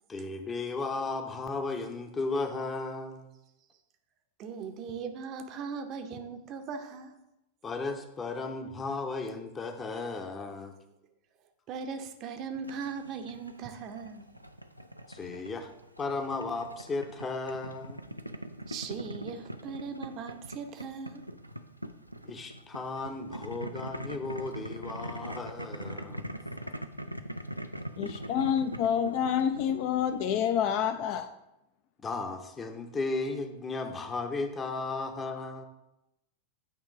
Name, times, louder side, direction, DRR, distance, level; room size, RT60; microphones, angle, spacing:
voice 1, 0.1-3.3 7.6-10.7 15.1-15.7 16.0-18.0 22.2-26.3 32.0-35.6, left 3 dB, 20° left, 7 dB, 0.7 m, -35 dB
voice 2, 4.4-7.1 11.7-14.2 18.7-21.2, right 5 dB, 35° right, 7 dB, 0.6 m, -39 dB
Boiling, 12.6-30.7, equal, 90° right, 0.4 m, -42 dB
voice 3, 28.0-31.3, left 8 dB, 45° left, 9 dB, 0.4 m, -28 dB
8.9 x 3.0 x 4.7 m, 0.91 s
figure-of-eight pair, 90°, 0 cm